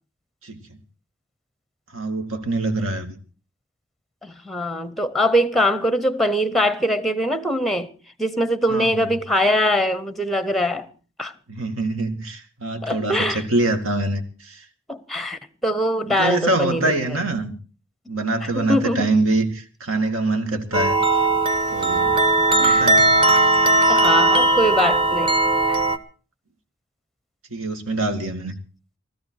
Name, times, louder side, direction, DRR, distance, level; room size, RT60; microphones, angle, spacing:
voice 1, 0.4-0.8 1.9-3.2 8.7-9.1 11.5-14.6 16.1-17.5 18.1-21.0 21.7-22.2 22.6-23.2 23.4-23.7 27.5-28.5, right 2 dB, 75° right, 2.3 m, -25 dB
voice 2, 4.2-7.9 8.2-10.9 11.2-11.3 12.8-13.4 14.9-16.9 18.5-19.1 22.6-22.9 23.9-25.3 25.7-25.8, equal, ahead, 0.8 m, -22 dB
sound 1, 20.7-26.0, right 2 dB, 25° right, 1.2 m, -18 dB
19.0 x 13.5 x 4.7 m
head